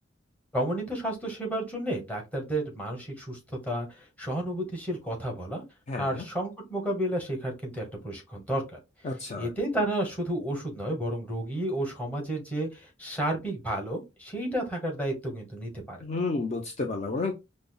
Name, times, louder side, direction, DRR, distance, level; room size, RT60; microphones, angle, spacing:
voice 1, 0.5-5.6 6.0-8.8 9.4-16.0, right 1 dB, 10° left, 1 dB, 1.1 m, -31 dB
voice 2, 5.9-6.2 9.0-9.5 16.0-17.3, left 3 dB, 35° left, 3 dB, 0.4 m, -31 dB
5.1 x 2.0 x 2.2 m, 0.24 s
head